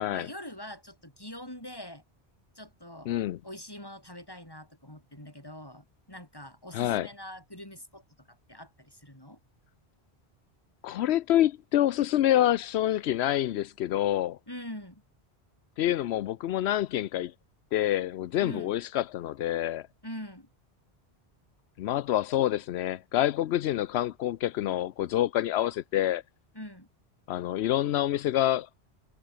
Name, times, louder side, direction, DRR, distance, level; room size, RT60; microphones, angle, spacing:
voice 1, 0.0-2.0 2.5-3.1 3.4-9.4 14.5-15.0 18.4-18.8 20.0-20.5 26.5-26.9, left 1 dB, 20° left, 6.0 m, -44 dB
voice 2, 3.1-3.4 6.7-7.1 10.8-14.4 15.8-17.3 17.7-19.9 21.8-26.2 27.3-28.7, left 13 dB, 85° left, 0.8 m, -27 dB
omnidirectional pair, 1.1 m